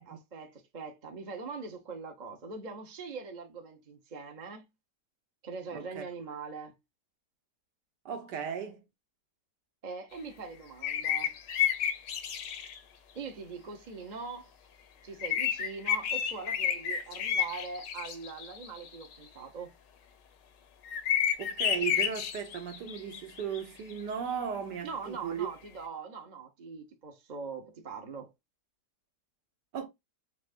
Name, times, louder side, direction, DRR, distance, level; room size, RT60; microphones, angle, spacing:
voice 1, 0.0-4.6 5.4-6.8 9.8-11.4 13.1-14.6 15.0-19.7 24.8-28.3, right 5 dB, 40° right, 0.7 m, -42 dB
voice 2, 5.7-6.0 8.0-8.8 21.4-25.5 29.7-29.9, right 7 dB, 75° right, 1.6 m, -36 dB
sound 1, 10.8-12.8 15.2-19.2 20.8-23.6 23.9-24.0, left 9 dB, 85° left, 1.5 m, -31 dB
4.8 x 3.4 x 2.5 m
omnidirectional pair, 1.8 m